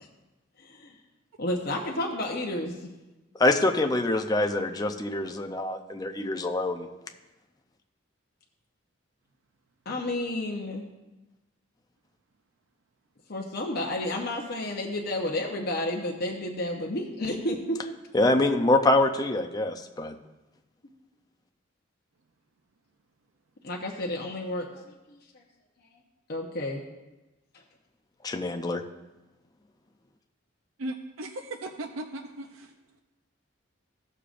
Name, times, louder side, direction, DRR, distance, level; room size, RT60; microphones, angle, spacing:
voice 1, 0.6-1.0 1.4-2.9 9.9-10.8 13.3-17.6 23.6-25.4 26.3-26.8, left 1 dB, 50° left, 0 dB, 0.9 m, -31 dB
voice 2, 3.4-6.9 18.1-20.1 28.2-28.8, left 2 dB, 20° left, 5 dB, 0.5 m, -25 dB
voice 3, 30.8-32.7, right 1 dB, 85° right, 6 dB, 0.6 m, -37 dB
16.5 x 6.7 x 2.5 m, 1.1 s
head